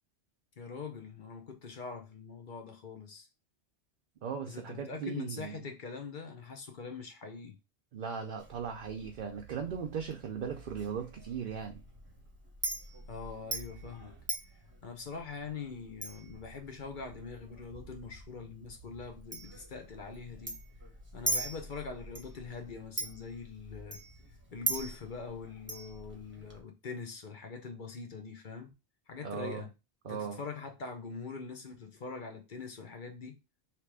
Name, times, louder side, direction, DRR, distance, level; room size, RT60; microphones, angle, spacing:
voice 1, 0.6-3.3 4.5-7.6 13.1-14.1 14.8-20.6 21.1-24.0 24.5-28.7 29.1-29.7 30.0-33.4, left 5 dB, 50° left, 0.9 m, -43 dB
voice 2, 4.2-5.6 7.9-11.8 29.2-29.7 30.0-30.4, right 6 dB, 55° right, 0.7 m, -38 dB
Chink clink, 8.4-26.6, right 2 dB, 10° right, 0.9 m, -42 dB
3.4 x 3.0 x 4.6 m
omnidirectional pair, 1.1 m